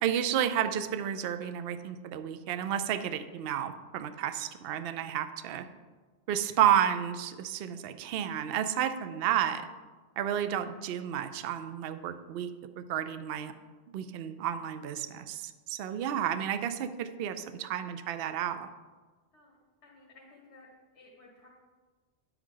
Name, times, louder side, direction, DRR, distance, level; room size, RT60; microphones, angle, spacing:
voice 1, 0.0-5.7 6.3-9.6 10.2-12.5 12.8-13.5 13.9-18.7, right 10 dB, 65° right, 10 dB, 0.7 m, -31 dB
voice 2, 19.8-20.7 20.9-21.5, left 3 dB, 80° left, -3 dB, 1.8 m, -56 dB
9.9 x 8.0 x 3.8 m, 1.4 s
omnidirectional pair, 1.1 m